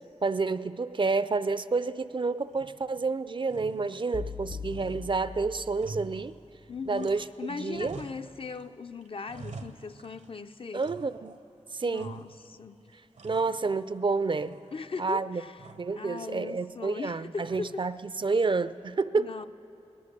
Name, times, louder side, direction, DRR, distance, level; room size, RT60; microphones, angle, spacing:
voice 1, 0.2-6.4 6.9-8.0 10.7-11.3 11.7-12.2 13.2-14.6 15.0-15.4 15.8-19.3, right 4 dB, 45° right, 15 dB, 0.4 m, -29 dB
sound 1, 2.5-3.1 3.4-4.4 4.7-7.4 7.7-8.7 9.0-10.4 10.8-11.5 11.9-12.6 12.9-14.0 14.3-15.0 15.6-16.0 17.4-17.9, right 3 dB, 80° right, 0.8 m, -47 dB
sound 2, 4.1-6.2, left 5 dB, 85° left, 1.2 m, -40 dB
voice 2, 6.7-10.8 11.8-12.8 14.7-15.7 16.0-17.8 19.2-19.5, left 4 dB, 50° left, 10 dB, 0.4 m, -39 dB
20.5 x 10.5 x 6.7 m, 2.7 s
wide cardioid pair, 65°, 12 cm